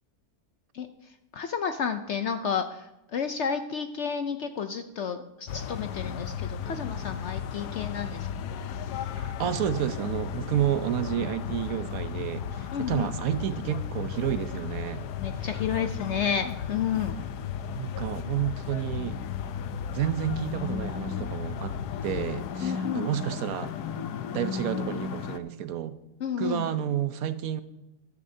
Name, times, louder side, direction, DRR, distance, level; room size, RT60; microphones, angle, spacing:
voice 1, 0.7-8.3 12.7-13.1 15.2-17.2 22.6-23.1 26.2-26.7, left 7 dB, 65° left, 8 dB, 0.7 m, -31 dB
sound 1, 5.5-25.4, left 7 dB, 85° left, 1.2 m, -34 dB
voice 2, 9.1-15.0 17.7-19.2 19.9-21.8 22.0-23.7 24.3-26.0 26.4-27.6, right 11 dB, 70° right, 12 dB, 1.0 m, -30 dB
14.0 x 11.0 x 2.7 m, 0.97 s
omnidirectional pair, 1.7 m